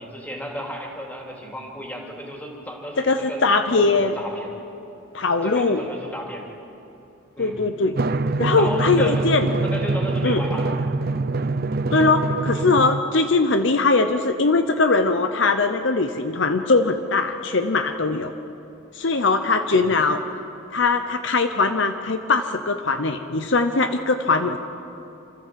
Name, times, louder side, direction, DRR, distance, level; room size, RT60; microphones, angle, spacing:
voice 1, 0.0-3.4 3.7-4.5 5.4-6.5 7.4-7.6 8.6-9.3 9.6-10.7 19.7-19.8, equal, 5° left, 0 dB, 2.5 m, -34 dB
voice 2, 3.0-4.2 5.1-5.8 7.4-7.9 8.4-9.5 10.2-10.4 11.9-18.3 18.9-20.2 20.7-24.6, left 3 dB, 60° left, 8 dB, 0.7 m, -21 dB
Drum, 8.0-13.0, right 3 dB, 45° right, 0.5 m, -24 dB
26.5 x 14.0 x 7.6 m, 2.9 s
head